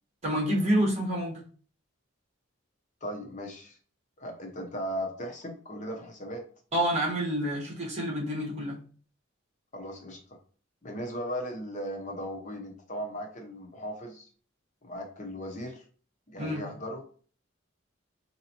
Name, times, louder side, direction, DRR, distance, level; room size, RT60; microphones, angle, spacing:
voice 1, 0.2-1.4 6.7-8.8 16.4-16.6, equal, 30° right, -3 dB, 1.3 m, -28 dB
voice 2, 3.0-3.8 4.2-6.4 9.7-10.4 10.8-14.3 14.8-15.9 16.3-17.0, equal, 35° left, 2 dB, 0.7 m, -37 dB
5.0 x 2.7 x 2.8 m, 0.43 s
head